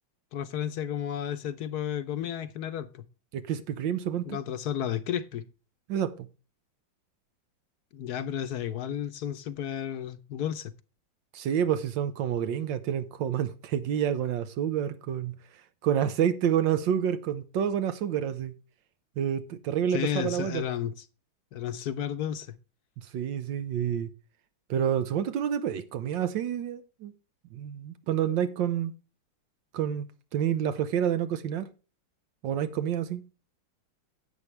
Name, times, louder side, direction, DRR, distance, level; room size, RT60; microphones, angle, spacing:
voice 1, 0.3-3.0 4.2-5.4 7.9-10.7 19.9-20.9 21.5-22.6, left 9 dB, 65° left, 1.1 m, -32 dB
voice 2, 3.3-4.4 5.9-6.3 11.3-15.3 15.8-18.5 19.2-20.6 23.1-24.1 24.7-27.1 27.5-28.9 29.7-30.1 30.3-31.7 32.4-33.2, right 9 dB, 80° right, 1.5 m, -28 dB
10.5 x 8.3 x 3.2 m
omnidirectional pair, 2.0 m